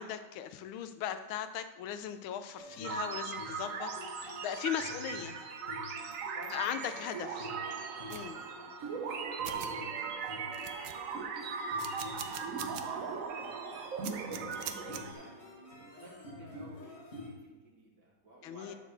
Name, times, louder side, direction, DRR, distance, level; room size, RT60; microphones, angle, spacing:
voice 1, 0.0-5.4 6.5-7.5 8.1-8.4 9.5-9.9 18.4-18.7, left 9 dB, 75° left, 10 dB, 1.4 m, -38 dB
sound 1, 2.6-17.3, left 2 dB, 35° left, 1.5 m, -49 dB
sound 2, 2.8-15.1, right 5 dB, 85° right, 0.7 m, -39 dB
voice 2, 6.3-9.2 9.7-11.3 11.7-13.2 14.5-18.8, right 2 dB, 50° right, -3 dB, 2.6 m, -55 dB
sound 3, 8.1-8.3 9.1-9.2 9.4-9.7 10.2-10.3 10.5-11.2 11.8-12.9 13.3-13.4 14.0-15.0, right 10 dB, 70° right, 1.2 m, -42 dB
11.0 x 4.2 x 6.8 m, 1.1 s
omnidirectional pair, 2.4 m